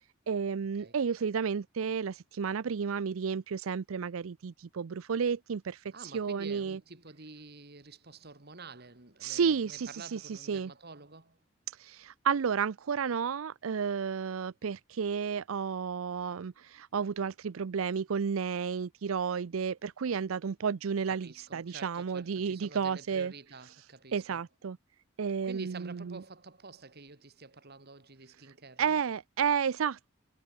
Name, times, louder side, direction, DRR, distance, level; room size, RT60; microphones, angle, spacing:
voice 1, 0.3-5.8 6.1-6.8 9.2-10.7 11.8-23.3 24.1-24.8 25.2-26.2 28.8-30.1, right 6 dB, 85° right, 0.5 m, -32 dB
voice 2, 5.9-11.4 21.1-24.4 25.4-29.0, right 3 dB, 50° right, 2.5 m, -49 dB
head